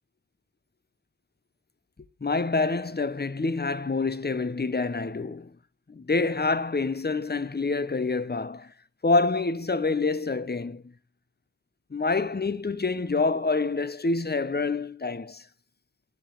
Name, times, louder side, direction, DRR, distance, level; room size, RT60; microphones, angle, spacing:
voice 1, 2.2-5.5 5.9-8.7 9.0-10.9 11.9-15.5, left 3 dB, 25° left, 0.8 m, -27 dB
10.5 x 5.1 x 7.3 m
wide cardioid pair, 60°, 38 cm